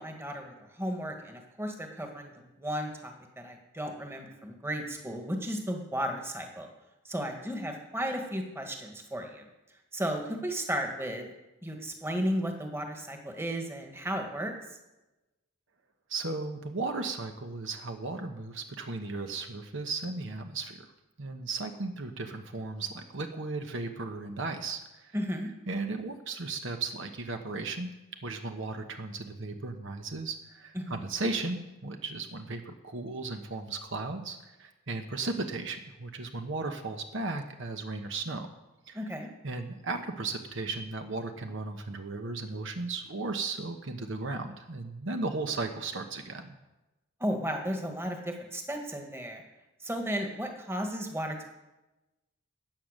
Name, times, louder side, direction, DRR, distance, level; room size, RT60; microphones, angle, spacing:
voice 1, 0.0-6.7 7.0-9.4 9.9-11.3 11.6-14.5 25.1-25.5 30.7-31.0 38.9-39.3 47.2-49.4 49.8-51.4, equal, 10° right, 3 dB, 1.7 m, -34 dB
voice 2, 16.1-20.8 21.2-25.1 25.7-27.9 28.2-38.5 38.9-39.1 39.4-46.5, right 3 dB, 65° right, 6 dB, 1.1 m, -35 dB
13.5 x 9.1 x 6.6 m, 1.0 s
head